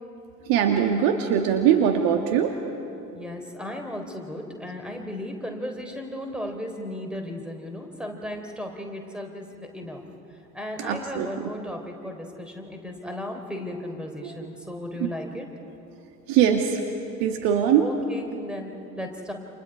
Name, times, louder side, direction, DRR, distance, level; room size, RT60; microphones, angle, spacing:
voice 1, 0.5-2.5 10.8-11.3 14.2-14.3 15.0-15.1 16.3-16.7 17.2-17.9, right 9 dB, 45° right, 4 dB, 1.9 m, -21 dB
voice 2, 3.1-10.0 10.5-15.5 17.8-19.3, left 1 dB, ahead, 3 dB, 3.7 m, -35 dB
29.5 x 28.0 x 4.9 m, 2.7 s
figure-of-eight pair, 75°, 46 cm